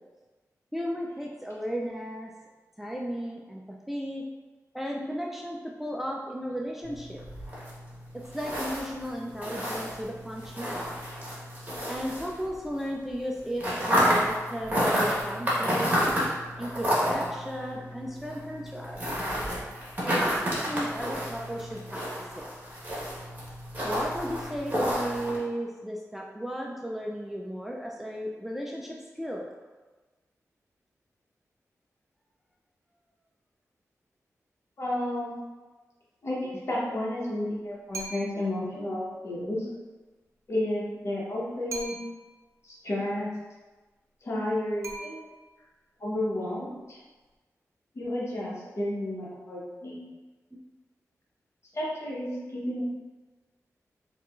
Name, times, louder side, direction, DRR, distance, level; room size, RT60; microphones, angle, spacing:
voice 1, 0.7-2.3 2.8-4.2 4.7-7.2 8.1-10.9 11.9-15.9 16.6-19.0 20.0-22.1 22.4-22.5 23.8-29.5 36.7-36.9, equal, 5° right, -1 dB, 0.3 m, -35 dB
sound 1, 6.8-12.8 13.1-25.4, equal, 30° right, 1.2 m, -30 dB
voice 2, 34.8-35.4 36.2-39.7 40.5-42.1 42.6-43.3 44.2-45.2 46.0-47.0 47.9-50.0 51.7-52.8, left 1 dB, 55° left, -6 dB, 1.0 m, -32 dB
sound 2, 37.9-38.6 41.7-42.4 44.8-45.6, right 3 dB, 55° right, 0.5 m, -40 dB
4.5 x 2.4 x 2.4 m, 1.3 s
wide cardioid pair, 85°, 6 cm